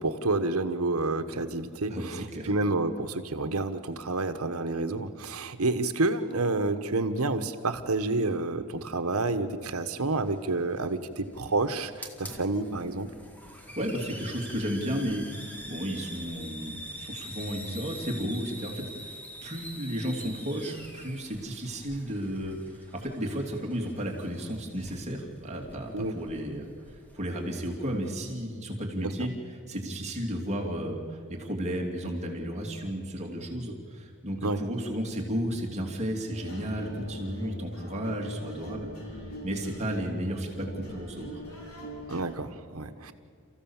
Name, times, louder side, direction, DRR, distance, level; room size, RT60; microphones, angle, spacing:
voice 1, 0.0-13.1 25.9-26.1 29.0-29.1 34.4-34.6 42.1-43.1, right 2 dB, 85° right, 8 dB, 1.3 m, -29 dB
voice 2, 1.9-2.5 13.8-19.1 19.4-22.6 22.9-26.7 27.1-29.3 29.7-38.9 39.4-41.4, equal, 30° right, 0 dB, 2.9 m, -33 dB
Hiss, 10.2-28.1, equal, 10° left, 1.9 m, -45 dB
sound 1, 36.3-42.2, equal, 80° left, 3.9 m, -42 dB
29.5 x 15.0 x 7.3 m, 2.2 s
head